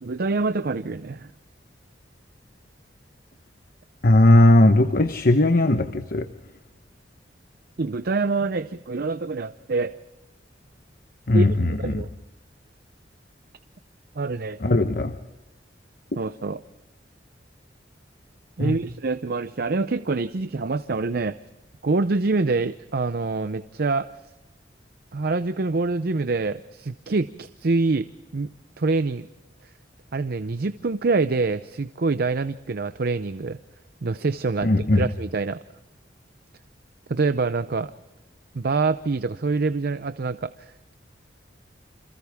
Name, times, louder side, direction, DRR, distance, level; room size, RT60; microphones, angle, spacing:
voice 1, 0.0-1.3 7.8-10.0 11.3-11.5 11.8-12.1 14.2-14.6 16.2-16.6 18.6-21.4 21.8-24.1 25.1-28.1 28.3-28.5 28.8-29.3 29.6-29.7 30.1-33.6 34.0-35.6 37.1-37.9 38.5-40.9, right 3 dB, 60° right, 12 dB, 0.6 m, -25 dB
voice 2, 4.0-6.3 11.3-12.0 14.6-15.2 18.6-18.8 34.6-35.1, left 1 dB, 55° left, 8 dB, 1.0 m, -18 dB
29.0 x 27.0 x 3.6 m, 1.0 s
head